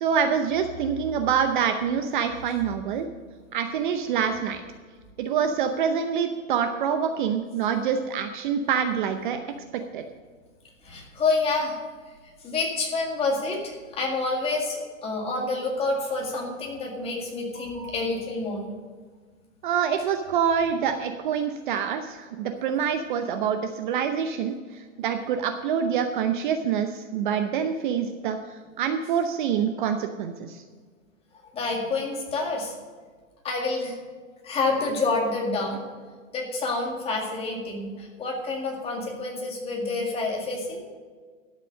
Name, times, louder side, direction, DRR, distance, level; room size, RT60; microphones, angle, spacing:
voice 1, 0.0-3.1 3.5-4.6 5.2-9.4 9.9-10.0 19.6-24.5 25.0-28.4 28.8-30.6, right 7 dB, 40° right, 7 dB, 0.8 m, -26 dB
voice 2, 10.8-11.8 12.4-18.6 31.5-32.7 33.4-33.9 34.4-35.8 36.3-40.9, left 3 dB, 15° left, -1 dB, 2.0 m, -28 dB
12.5 x 7.6 x 6.4 m, 1.5 s
hypercardioid pair, 150°, 40 cm